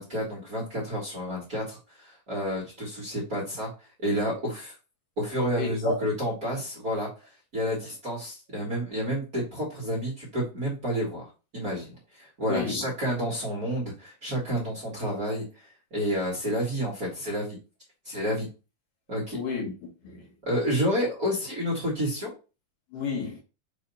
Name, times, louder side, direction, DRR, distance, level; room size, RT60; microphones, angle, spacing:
voice 1, 0.0-3.7 4.0-4.7 5.2-7.1 7.5-11.2 11.5-17.6 18.0-18.5 19.1-19.4 20.4-22.3, equal, 30° right, 1.8 m, -30 dB
voice 2, 5.6-6.0 12.4-12.9 19.3-20.3 22.9-23.4, left 4 dB, 65° left, 2.7 m, -31 dB
6.7 x 3.4 x 4.2 m
omnidirectional pair, 4.5 m